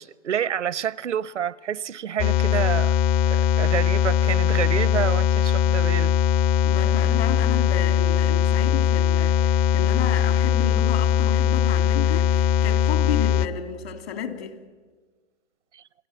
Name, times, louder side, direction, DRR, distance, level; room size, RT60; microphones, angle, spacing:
voice 1, 0.0-2.9 3.3-6.1 15.7-15.8, right 9 dB, 80° right, 0.8 m, -28 dB
sound 1, 2.2-13.5, left 9 dB, 25° left, 0.7 m, -20 dB
voice 2, 6.6-14.6, left 9 dB, 60° left, 2.9 m, -32 dB
29.0 x 17.5 x 9.3 m
hypercardioid pair, 130°, 35 cm